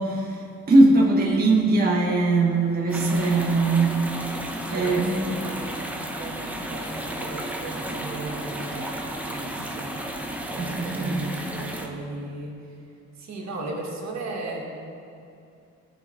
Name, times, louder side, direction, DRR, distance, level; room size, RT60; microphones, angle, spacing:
voice 1, 0.0-4.0 4.7-5.4 10.6-11.3, right 2 dB, 30° right, -3 dB, 1.2 m, -21 dB
sound 1, 2.9-11.9, right 1 dB, 5° right, 0.9 m, -33 dB
voice 2, 4.7-10.0 10.5-12.6 13.2-14.6, right 2 dB, 65° right, -1 dB, 1.7 m, -36 dB
14.0 x 4.8 x 3.8 m, 2.5 s
cardioid pair, 90°, 30 cm